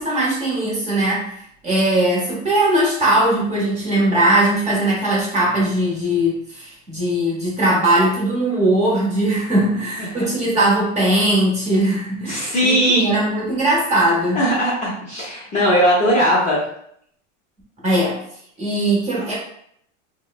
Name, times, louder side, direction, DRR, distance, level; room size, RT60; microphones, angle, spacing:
voice 1, 0.0-14.4 17.8-18.2 18.6-19.3, right 1 dB, 20° right, -5 dB, 0.9 m, -19 dB
voice 2, 12.3-13.1 14.3-16.6, equal, 20° left, -7 dB, 0.5 m, -18 dB
3.0 x 2.1 x 2.3 m, 0.69 s
supercardioid pair, 135°, 38 cm